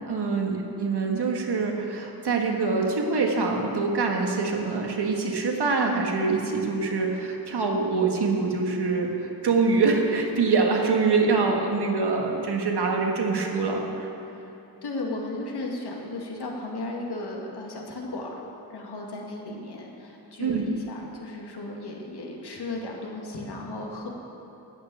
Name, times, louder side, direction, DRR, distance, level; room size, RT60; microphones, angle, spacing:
voice 1, 0.1-14.1 20.4-20.7, right 4 dB, 75° right, 1 dB, 1.7 m, -25 dB
voice 2, 14.8-18.4 18.7-24.1, left 2 dB, 75° left, -1 dB, 2.1 m, -35 dB
13.5 x 6.5 x 9.1 m, 3.0 s
wide cardioid pair, 170°, 40 cm